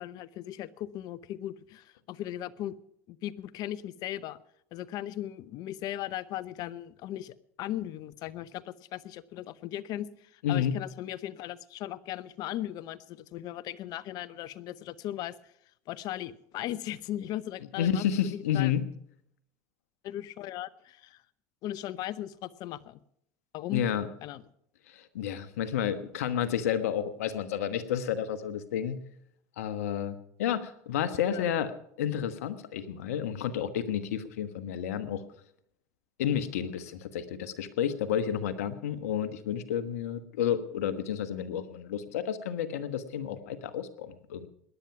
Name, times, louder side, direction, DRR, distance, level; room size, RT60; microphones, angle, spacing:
voice 1, 0.0-2.7 3.1-4.4 4.7-15.4 15.9-18.0 18.3-18.7 20.0-21.2 21.6-23.0 23.5-23.8 24.2-24.4 31.3-31.5, left 13 dB, 55° left, 18 dB, 0.8 m, -38 dB
voice 2, 10.4-10.8 17.8-18.9 23.7-24.1 24.9-29.0 29.6-31.7 32.0-35.2 36.2-44.5, left 9 dB, 85° left, 12 dB, 1.2 m, -31 dB
18.5 x 11.0 x 5.9 m, 0.70 s
hypercardioid pair, 90°, 8 cm